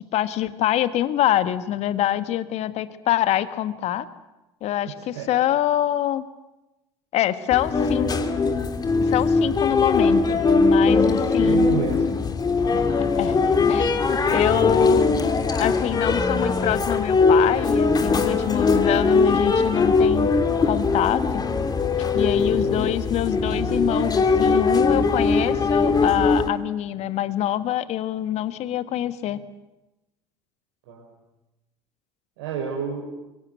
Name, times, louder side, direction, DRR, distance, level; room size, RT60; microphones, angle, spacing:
voice 1, 0.1-4.1 4.6-6.2 7.1-8.1 9.0-11.7 12.7-13.4 13.7-15.2 15.6-20.3 20.6-21.4 22.1-29.4, left 12 dB, 50° left, 12 dB, 1.5 m, -25 dB
voice 2, 4.9-5.3 11.4-12.1 22.3-22.9 30.9-31.1 32.4-33.1, right 5 dB, 70° right, -1 dB, 5.3 m, -30 dB
sound 1, 7.5-26.5, left 4 dB, 30° left, 2.6 m, -21 dB
25.0 x 23.5 x 8.1 m, 1.0 s
figure-of-eight pair, 65°, 14 cm